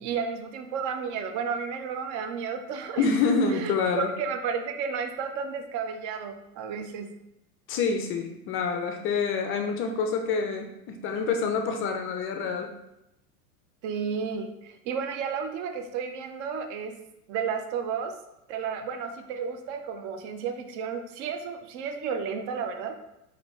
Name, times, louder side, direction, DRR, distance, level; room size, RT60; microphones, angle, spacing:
voice 1, 0.0-3.1 3.5-7.1 13.8-17.0 17.3-18.2 18.5-23.0, right 6 dB, 40° right, 7 dB, 0.6 m, -32 dB
voice 2, 3.0-4.1 7.7-12.7, left 5 dB, 30° left, 4 dB, 0.4 m, -27 dB
5.0 x 2.8 x 3.0 m, 0.86 s
hypercardioid pair, 95°, 46 cm